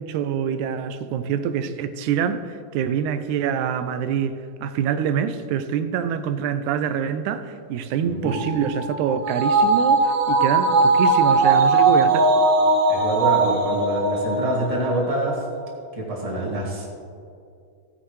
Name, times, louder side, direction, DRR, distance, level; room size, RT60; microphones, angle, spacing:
voice 1, 0.0-12.3, right 8 dB, 90° right, 11 dB, 2.0 m, -25 dB
voice 2, 8.0-8.4 12.9-15.4 15.9-16.9, right 1 dB, 15° right, -4 dB, 1.6 m, -25 dB
sound 1, 8.3-14.9 15.3-15.4, right 3 dB, 60° right, 2.3 m, -19 dB
16.0 x 9.6 x 3.1 m, 2.4 s
omnidirectional pair, 3.4 m